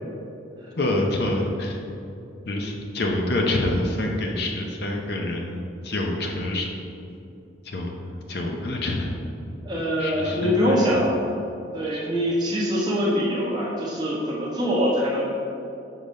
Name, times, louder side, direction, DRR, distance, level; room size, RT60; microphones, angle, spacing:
voice 1, 0.8-1.8 2.5-6.7 7.6-7.9 8.3-9.1 10.0-11.0 11.9-12.1, left 1 dB, 55° left, 1 dB, 0.6 m, -26 dB
voice 2, 9.6-11.2 11.7-15.3, equal, 20° right, -5 dB, 1.1 m, -24 dB
5.1 x 3.9 x 5.4 m, 2.7 s
head